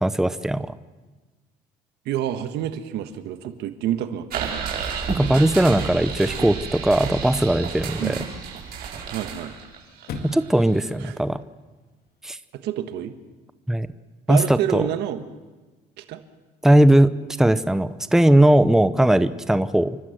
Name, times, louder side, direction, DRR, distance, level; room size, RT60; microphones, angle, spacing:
voice 1, 0.0-0.7 5.1-8.2 10.2-11.4 12.2-12.4 13.7-13.9 14.3-14.9 16.6-17.1 17.4-20.0, right 1 dB, 5° right, 13 dB, 0.8 m, -19 dB
voice 2, 2.1-4.7 8.0-8.2 9.1-9.5 11.0-11.2 12.6-13.1 14.3-15.2 16.0-16.2, right 11 dB, 85° right, 8 dB, 1.4 m, -28 dB
Chirp tweet / Car / Slam, 2.2-12.2, left 4 dB, 65° left, 2.3 m, -47 dB
sound 1, 4.3-10.9, right 6 dB, 65° right, 5.2 m, -31 dB
30.0 x 12.5 x 7.8 m, 1.3 s
cardioid pair, 110°, 17 cm